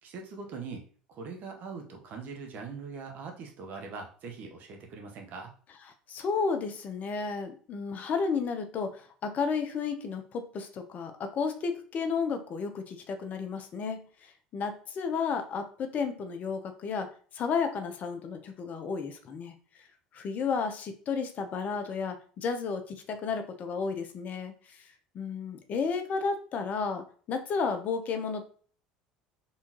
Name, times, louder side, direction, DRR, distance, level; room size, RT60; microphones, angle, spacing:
voice 1, 0.0-0.8 1.1-5.5, right 4 dB, 55° right, 2 dB, 1.1 m, -41 dB
voice 2, 6.1-19.5 20.1-24.8 25.1-28.4, left 5 dB, 45° left, 7 dB, 0.8 m, -32 dB
4.2 x 3.6 x 3.0 m, 0.43 s
hypercardioid pair, 75°, 4 cm